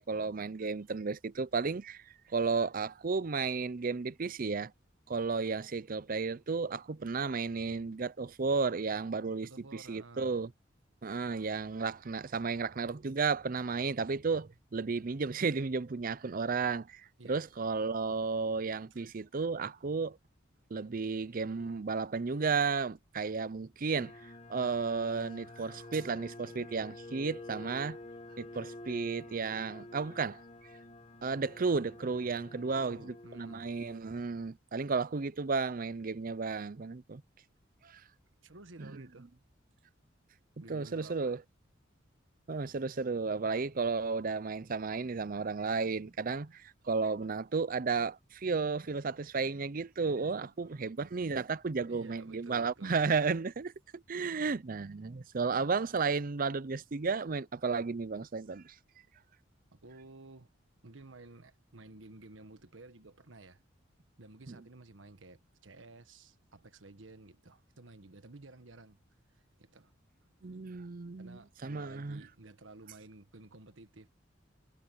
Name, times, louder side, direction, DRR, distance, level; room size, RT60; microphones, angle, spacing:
voice 1, 0.0-2.0 2.3-4.7 5.1-10.5 11.0-20.2 20.7-28.0 28.4-30.4 31.2-37.2 37.8-38.0 38.8-39.0 40.7-41.4 42.5-58.7 64.5-64.6 70.4-72.2, right 4 dB, 50° right, 0.6 m, -33 dB
voice 2, 9.4-10.3 17.2-17.5 18.9-19.0 32.7-33.7 38.4-39.3 40.6-41.4 51.8-52.9 59.7-60.5 60.8-63.6 64.2-69.0 69.3-69.9 71.2-74.1, right 2 dB, 85° right, 1.4 m, -53 dB
sound 1, 23.9-34.0, left 1 dB, 35° left, 1.5 m, -49 dB
head